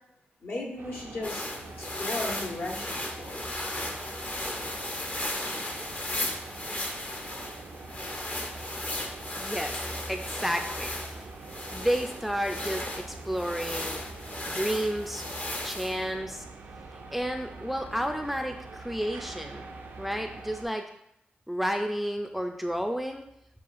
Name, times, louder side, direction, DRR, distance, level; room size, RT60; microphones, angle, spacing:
voice 1, 0.4-1.5 1.8-3.5, left 2 dB, 70° left, -2 dB, 1.2 m, -36 dB
sound 1, 0.8-20.7, right 3 dB, 90° right, 0.6 m, -45 dB
sound 2, 1.2-16.0, left 1 dB, 40° left, 0.7 m, -36 dB
voice 2, 9.4-10.9 11.7-14.0 14.5-15.2 15.6-16.4 16.9-19.7 20.0-20.9 21.5-23.2, equal, ahead, 4 dB, 0.4 m, -31 dB
7.1 x 2.4 x 2.5 m, 0.80 s
cardioid pair, 45°, 4 cm